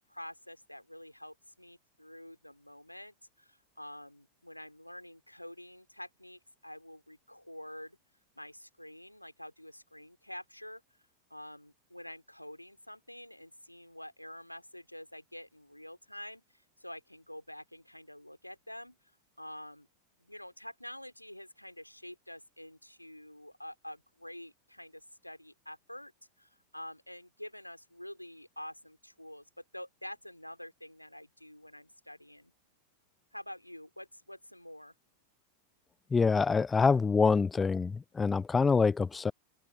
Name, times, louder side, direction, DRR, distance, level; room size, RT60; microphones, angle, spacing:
voice 1, 0.0-8.0 8.3-10.8 11.3-16.4 16.8-19.0 19.4-19.9 20.2-26.1 26.4-32.5 33.3-34.9, left 1 dB, 90° left, 3.4 m, -47 dB
voice 2, 36.1-39.3, left 5 dB, 15° left, 0.4 m, -26 dB
open air
figure-of-eight pair, 90°, 0 cm